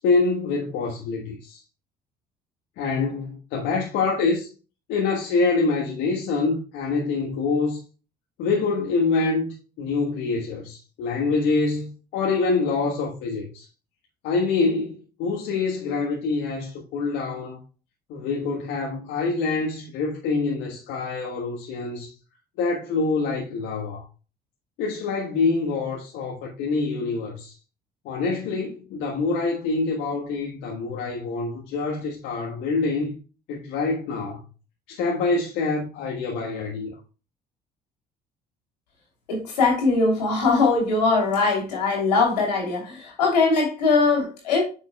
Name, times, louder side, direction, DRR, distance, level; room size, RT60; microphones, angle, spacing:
voice 1, 0.0-1.6 2.8-4.5 4.9-7.8 8.4-13.6 14.2-17.6 18.1-22.1 22.6-24.0 24.8-27.5 28.0-33.2 33.5-34.4 34.9-36.9, left 4 dB, 65° left, 1.4 m, -25 dB
voice 2, 39.3-44.6, left 3 dB, 80° left, 3.0 m, -21 dB
9.6 x 6.3 x 2.3 m
hypercardioid pair, 50°, 21 cm